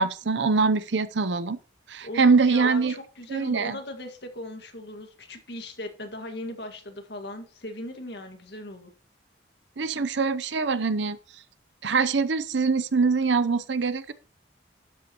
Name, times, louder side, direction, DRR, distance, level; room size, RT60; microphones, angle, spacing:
voice 1, 0.0-1.6 1.9-2.9 3.3-3.8 9.8-11.2 11.8-14.1, right 4 dB, 75° right, 0.7 m, -23 dB
voice 2, 2.0-8.9, left 1 dB, 60° left, 1.8 m, -38 dB
12.0 x 8.3 x 3.0 m
head